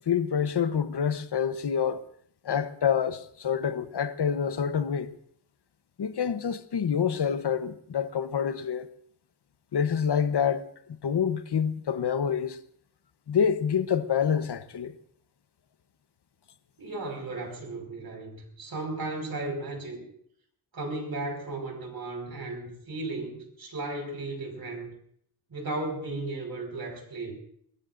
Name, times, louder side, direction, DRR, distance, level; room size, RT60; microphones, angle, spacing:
voice 1, 0.1-2.0 2.4-5.1 6.0-8.9 9.7-10.6 11.0-12.6 13.3-14.9, left 7 dB, 75° left, 1.0 m, -27 dB
voice 2, 16.8-20.0 20.7-24.9 25.5-27.3, right 2 dB, 65° right, 5.4 m, -35 dB
23.0 x 21.5 x 2.6 m
wide cardioid pair, 120°, 40 cm